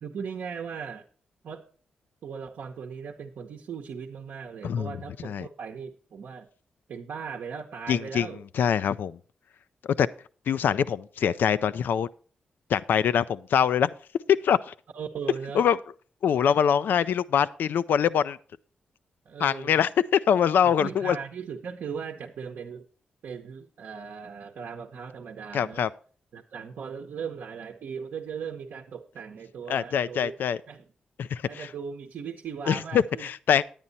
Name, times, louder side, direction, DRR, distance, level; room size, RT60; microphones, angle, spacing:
voice 1, 0.0-1.0 1.4-1.6 2.2-6.5 6.9-8.4 14.9-15.7 19.2-19.8 20.6-22.8 23.2-25.8 26.3-30.3 30.7-30.8 31.5-33.3, right 6 dB, 75° right, 2 dB, 0.8 m, -38 dB
voice 2, 4.6-5.0 5.2-5.5 7.9-8.3 8.5-9.2 9.8-10.1 10.5-12.1 12.7-13.9 14.4-14.7 15.5-15.8 16.2-18.4 19.4-21.2 25.5-25.9 29.7-30.6 31.2-31.7 32.7-33.6, left 8 dB, 75° left, 16 dB, 0.4 m, -24 dB
9.7 x 9.0 x 4.1 m, 0.42 s
supercardioid pair, 45°, 3 cm